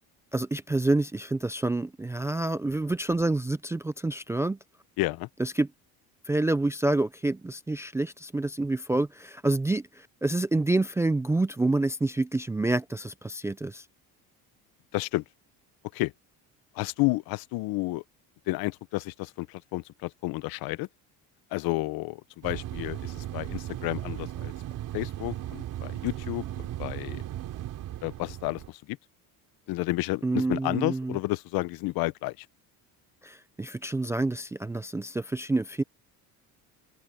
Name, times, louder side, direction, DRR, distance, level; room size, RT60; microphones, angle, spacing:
voice 1, 0.3-4.6 5.4-5.7 6.3-9.8 10.2-13.8 30.2-31.2 33.2-35.8, right 2 dB, 10° right, 0.3 m, -27 dB
voice 2, 5.0-5.3 14.9-15.2 15.9-16.1 16.7-18.0 18.5-20.9 21.5-24.5 24.9-27.2 28.0-29.0 29.7-32.5, left 20 dB, 70° left, 0.8 m, -31 dB
sound 1, 22.4-28.7, right 13 dB, 55° right, 3.4 m, -36 dB
cardioid pair, 155°, 37 cm